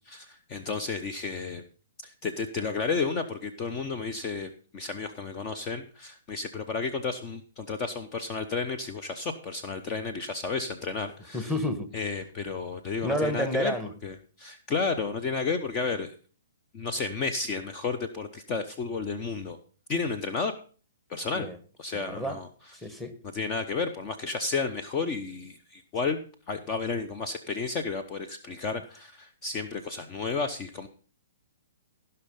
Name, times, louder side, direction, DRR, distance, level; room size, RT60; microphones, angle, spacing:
voice 1, 0.1-1.6 2.0-11.5 11.9-13.7 14.0-16.1 16.7-19.6 19.9-20.5 21.1-21.5 21.8-22.5 23.3-26.2 26.5-30.9, left 4 dB, 30° left, 9 dB, 0.9 m, -32 dB
voice 2, 11.3-11.9 13.0-13.9 21.3-21.6 21.9-22.4 22.7-23.1, equal, 5° left, 8 dB, 1.4 m, -30 dB
16.0 x 5.6 x 5.4 m, 0.40 s
hypercardioid pair, 125°, 0 cm